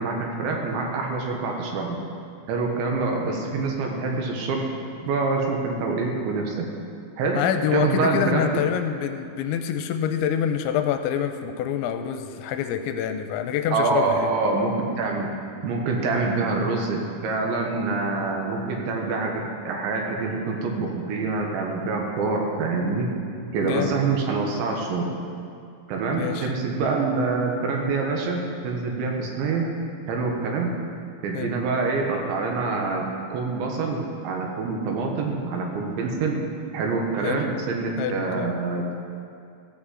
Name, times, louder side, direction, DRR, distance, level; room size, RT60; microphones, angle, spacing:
voice 1, 0.0-2.0 2.5-4.6 5.0-6.7 7.2-7.4 7.7-8.6 13.7-15.3 15.6-23.1 23.5-25.1 25.9-29.7 30.1-30.7 31.2-36.4 36.7-38.9, right 3 dB, 75° right, 0 dB, 3.6 m, -26 dB
voice 2, 7.3-14.3 23.6-23.9 26.1-26.5 31.3-31.5 37.2-37.4 38.0-38.5, left 9 dB, 85° left, 7 dB, 2.9 m, -26 dB
15.0 x 6.1 x 7.7 m, 2.4 s
omnidirectional pair, 5.4 m